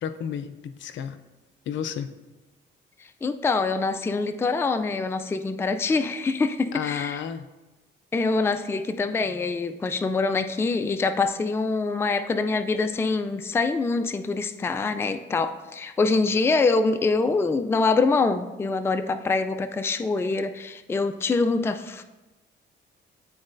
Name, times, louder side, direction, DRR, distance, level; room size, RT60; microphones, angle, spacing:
voice 1, 0.0-1.2 1.7-2.1 6.7-7.5, left 8 dB, 70° left, 9 dB, 0.5 m, -32 dB
voice 2, 3.2-7.2 8.1-22.0, left 3 dB, 10° left, 8 dB, 0.3 m, -25 dB
11.0 x 4.0 x 2.6 m, 1.1 s
cardioid pair, 90°, 20 cm